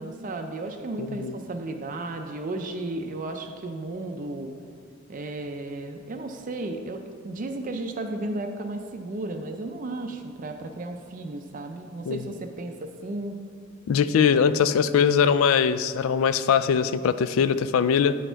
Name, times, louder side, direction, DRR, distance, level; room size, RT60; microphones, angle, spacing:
voice 1, 0.0-4.5 5.1-13.4, right 2 dB, 40° right, 5 dB, 0.4 m, -34 dB
voice 2, 1.0-1.3 12.1-12.2 13.9-18.2, left 7 dB, 80° left, 14 dB, 0.3 m, -21 dB
9.1 x 4.3 x 4.4 m, 2.1 s
head